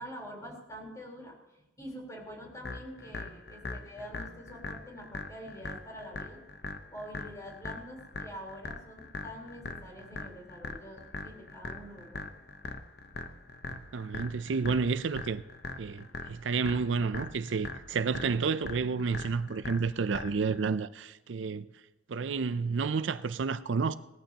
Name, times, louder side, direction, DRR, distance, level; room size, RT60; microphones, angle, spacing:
voice 1, 0.0-6.4 6.9-12.2, equal, 15° left, 3.9 m, -46 dB
sound 1, 2.6-20.6, left 3 dB, 55° left, 0.9 m, -42 dB
voice 2, 13.7-15.4 15.8-21.7 22.1-24.0, right 5 dB, 75° right, 0.5 m, -30 dB
19.0 x 14.0 x 2.9 m
head